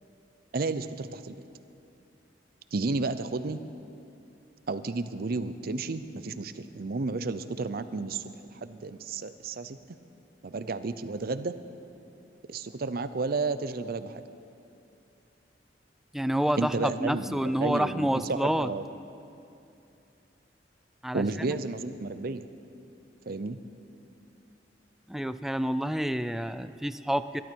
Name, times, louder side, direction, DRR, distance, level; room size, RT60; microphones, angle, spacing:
voice 1, 0.5-1.3 2.7-3.6 4.7-8.2 8.6-9.8 10.4-11.5 12.5-14.2 16.6-18.8 21.1-22.4 23.3-23.6, right 3 dB, 55° right, 12 dB, 0.6 m, -32 dB
voice 2, 16.1-18.7 21.0-21.6 25.1-27.4, equal, ahead, 12 dB, 0.3 m, -28 dB
21.5 x 12.0 x 4.6 m, 2.7 s
head